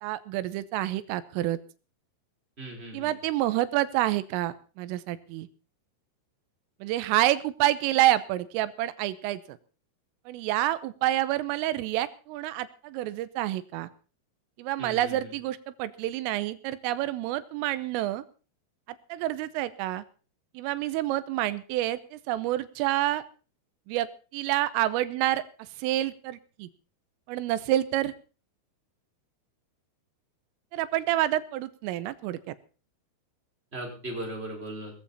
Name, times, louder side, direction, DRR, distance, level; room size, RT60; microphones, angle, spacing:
voice 1, 0.0-1.6 2.9-5.5 6.8-9.6 10.3-13.9 14.6-18.2 18.9-20.1 20.6-23.2 23.9-26.7 27.3-28.1 30.7-32.6, right 14 dB, 90° right, 15 dB, 3.6 m, -28 dB
voice 2, 2.6-3.1 14.8-15.1 33.7-34.9, right 1 dB, 10° right, 0 dB, 4.9 m, -37 dB
19.5 x 14.5 x 4.2 m, 0.36 s
omnidirectional pair, 5.7 m